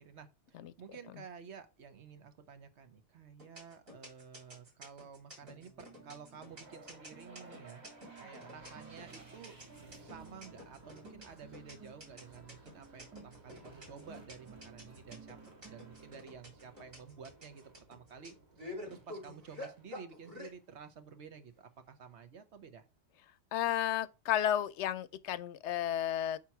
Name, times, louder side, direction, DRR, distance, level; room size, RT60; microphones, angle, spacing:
voice 1, 0.0-7.8 8.2-9.6 10.0-17.6 17.9-18.3 18.8-22.8, right 6 dB, 70° right, 1.2 m, -52 dB
sound 1, 3.4-20.5, left 1 dB, 55° right, 4.0 m, -48 dB
sound 2, 5.4-18.2, right 5 dB, 15° right, 0.7 m, -58 dB
sound 3, 6.4-20.6, right 2 dB, 40° right, 1.5 m, -58 dB
voice 2, 23.5-26.4, left 11 dB, 75° left, 0.9 m, -32 dB
8.5 x 3.0 x 5.8 m
omnidirectional pair, 1.2 m